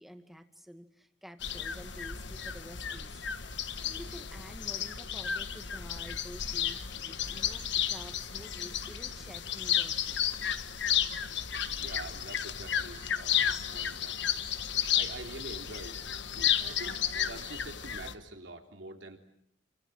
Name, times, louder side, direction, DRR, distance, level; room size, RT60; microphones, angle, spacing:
voice 1, 0.0-3.2 3.6-10.2, equal, ahead, 7 dB, 2.1 m, -50 dB
sound 1, 1.4-18.1, left 9 dB, 70° left, 1.4 m, -33 dB
voice 2, 11.3-14.2 14.9-16.0 16.3-19.2, right 2 dB, 75° right, 4 dB, 3.5 m, -46 dB
28.5 x 25.0 x 7.8 m, 0.72 s
head